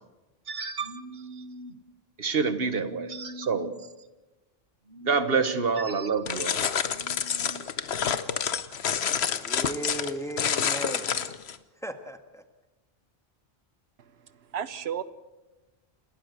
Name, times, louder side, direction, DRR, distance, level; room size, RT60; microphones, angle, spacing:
voice 1, 0.5-1.7 2.2-3.7 4.9-7.6, right 5 dB, 70° right, 1.5 m, -29 dB
sound 1, 6.3-11.6, left 7 dB, 85° left, 1.2 m, -28 dB
voice 2, 9.2-11.2 11.8-12.4, right 1 dB, 5° left, 1.6 m, -36 dB
voice 3, 14.0-15.0, right 8 dB, 90° right, 1.1 m, -34 dB
28.5 x 13.0 x 8.0 m
omnidirectional pair, 1.0 m